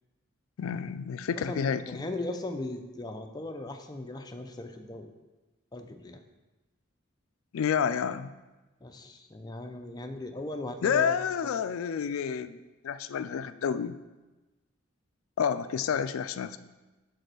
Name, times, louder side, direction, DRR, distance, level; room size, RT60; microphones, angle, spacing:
voice 1, 0.6-2.1 7.5-8.3 10.8-14.0 15.4-16.6, left 7 dB, 90° left, 13 dB, 0.3 m, -29 dB
voice 2, 1.5-5.1 5.7-6.2 8.8-11.1 11.4-11.5, left 2 dB, 20° left, 5 dB, 0.5 m, -38 dB
5.3 x 4.1 x 6.1 m, 1.1 s
head